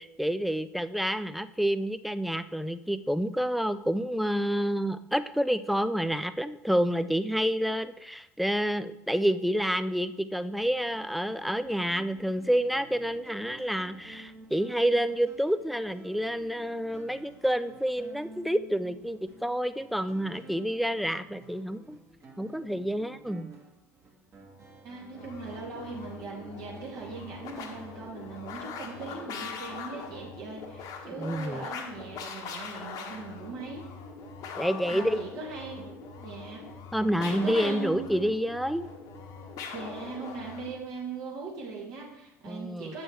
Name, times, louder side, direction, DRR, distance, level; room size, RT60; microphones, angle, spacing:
voice 1, 0.0-22.0 22.4-23.5 31.2-31.7 34.6-35.2 36.9-38.9 42.4-42.9, equal, ahead, 13 dB, 0.4 m, -28 dB
sound 1, 10.5-30.2, right 2 dB, 35° right, 1.9 m, -52 dB
voice 2, 24.8-33.8 34.9-36.6 37.3-38.1 39.7-43.0, right 4 dB, 55° right, -2 dB, 2.4 m, -40 dB
sound 2, 25.1-40.8, left 5 dB, 50° left, 1.2 m, -42 dB
8.7 x 6.2 x 3.2 m, 0.85 s
figure-of-eight pair, 65°, 8 cm